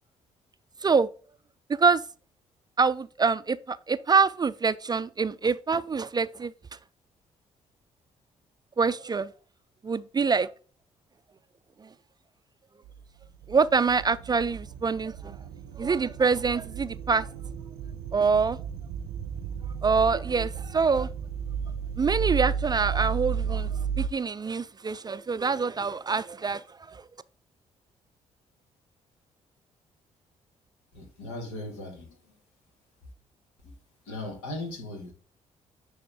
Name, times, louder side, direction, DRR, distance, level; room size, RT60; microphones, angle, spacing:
voice 1, 1.7-2.0 2.8-6.5 8.8-9.3 9.8-10.5 11.8-11.9 13.5-15.4 15.8-17.3 18.1-18.6 19.8-21.1 22.0-27.1, right 5 dB, 25° right, 0.4 m, -25 dB
sound 1, 12.8-24.1, right 7 dB, 70° right, 0.6 m, -33 dB
voice 2, 30.9-32.3 33.6-33.7 34.1-35.1, left 2 dB, 80° left, 1.9 m, -38 dB
9.5 x 3.5 x 3.6 m
hypercardioid pair, 45°, 16 cm